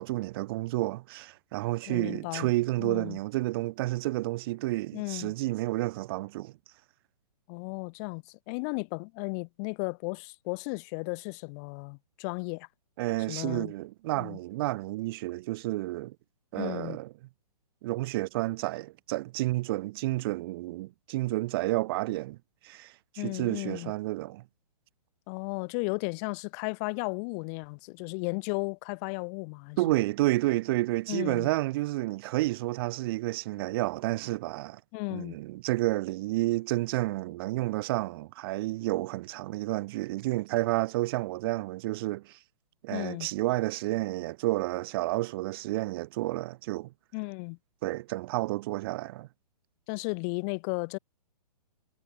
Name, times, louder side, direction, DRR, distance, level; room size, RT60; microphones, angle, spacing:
voice 1, 0.0-6.5 13.0-16.1 16.5-17.1 17.8-22.4 22.6-24.4 29.8-34.8 35.1-42.4 42.8-46.9 47.8-49.3, right 18 dB, 35° right, 1.3 m, -30 dB
voice 2, 1.9-2.5 2.8-3.2 4.9-5.3 7.5-12.7 13.3-13.7 14.2-14.4 16.5-17.0 23.2-23.9 25.3-30.0 31.1-31.5 34.9-35.4 42.9-43.3 47.1-47.6 49.9-51.0, left 36 dB, 25° left, 0.8 m, -35 dB
hypercardioid pair, 150°, 21 cm